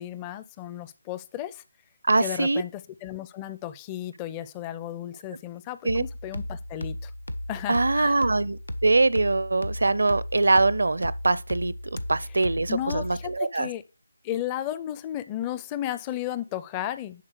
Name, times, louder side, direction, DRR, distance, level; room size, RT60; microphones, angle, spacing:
voice 1, 0.0-1.6 2.2-7.1 7.5-8.3 12.7-13.8 14.2-17.2, left 12 dB, 15° left, 0.5 m, -34 dB
voice 2, 2.1-2.6 5.8-6.0 7.7-11.7 12.1-13.7, right 2 dB, 65° right, 0.6 m, -23 dB
sound 1, 5.9-13.4, left 1 dB, 90° left, 1.1 m, -35 dB
10.5 x 3.8 x 6.3 m
figure-of-eight pair, 150°, 0 cm